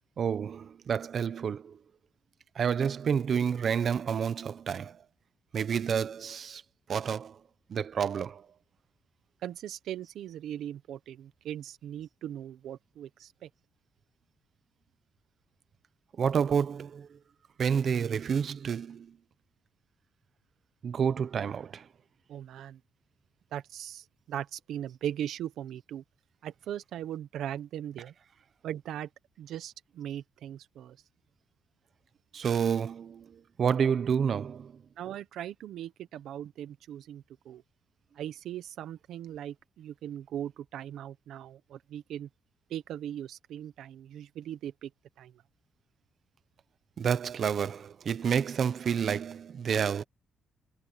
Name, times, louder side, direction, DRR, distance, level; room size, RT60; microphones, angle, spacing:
voice 1, 0.2-1.8 2.5-5.0 5.5-6.6 6.9-7.4 7.7-8.5 16.2-17.2 17.6-19.1 20.8-21.9 32.3-34.8 47.0-50.0, right 7 dB, 55° right, 1.1 m, -29 dB
voice 2, 9.4-13.5 22.3-22.8 23.5-26.0 26.4-28.1 28.6-29.1 29.4-31.0 35.0-37.6 38.2-42.3 42.7-44.9 45.2-45.3, right 11 dB, 75° right, 1.0 m, -39 dB
cardioid pair, 90°, 0 cm